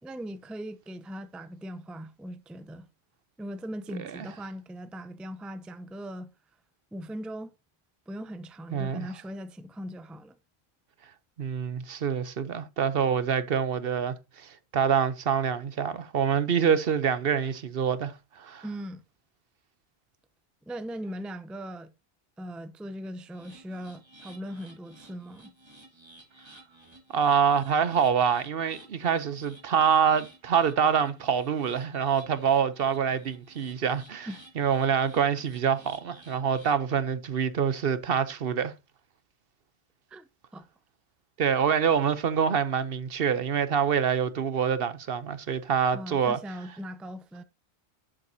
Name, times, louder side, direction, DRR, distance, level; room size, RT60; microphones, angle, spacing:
voice 1, 0.0-2.9 3.4-6.3 6.9-7.5 8.1-10.4 18.6-19.0 20.7-21.9 22.4-25.5 34.3-34.4 40.1-40.2 40.5-40.7 45.9-47.4, equal, ahead, 0.4 m, -39 dB
voice 2, 8.7-9.1 11.4-18.6 27.1-34.3 34.6-38.7 41.4-46.4, right 7 dB, 65° right, 1.0 m, -26 dB
sound 1, 23.3-36.8, right 2 dB, 25° right, 2.3 m, -54 dB
10.5 x 7.7 x 2.8 m
omnidirectional pair, 1.1 m